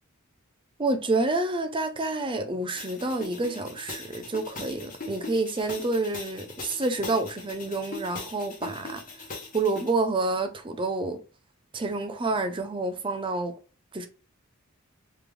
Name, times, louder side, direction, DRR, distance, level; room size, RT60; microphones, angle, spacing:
voice 1, 0.8-9.3 9.5-11.2 11.7-13.5 13.9-14.1, right 2 dB, 25° right, 0.5 m, -28 dB
sound 1, 2.8-9.9, left 3 dB, 40° left, 1.2 m, -41 dB
3.5 x 3.2 x 3.3 m
head